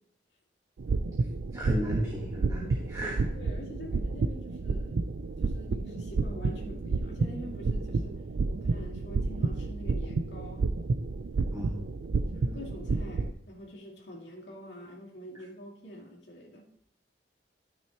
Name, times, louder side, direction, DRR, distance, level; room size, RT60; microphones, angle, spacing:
sound 1, 0.8-13.3, right 3 dB, 75° right, 0.4 m, -30 dB
voice 1, 1.5-3.3 11.5-11.7, equal, 20° right, -3 dB, 1.4 m, -33 dB
voice 2, 3.3-5.0 5.4-8.2 8.5-10.7 12.3-16.7, equal, 70° left, -3 dB, 2.4 m, -45 dB
13.0 x 6.3 x 2.9 m, 0.72 s
head